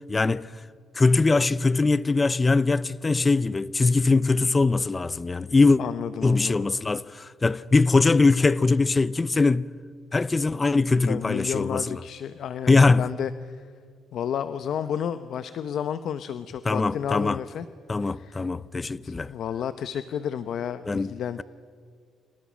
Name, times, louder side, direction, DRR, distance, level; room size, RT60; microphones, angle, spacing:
voice 1, 0.1-0.5 0.9-5.8 6.2-9.7 10.1-12.0 12.7-13.1 16.6-17.4 17.9-19.3 20.9-21.1, left 3 dB, 25° left, 0.6 m, -21 dB
voice 2, 5.8-6.7 11.1-13.7 14.1-17.7 18.0-18.5 19.0-21.4, left 8 dB, 70° left, 0.8 m, -32 dB
30.0 x 26.5 x 6.3 m
cardioid pair, 90°, 0 cm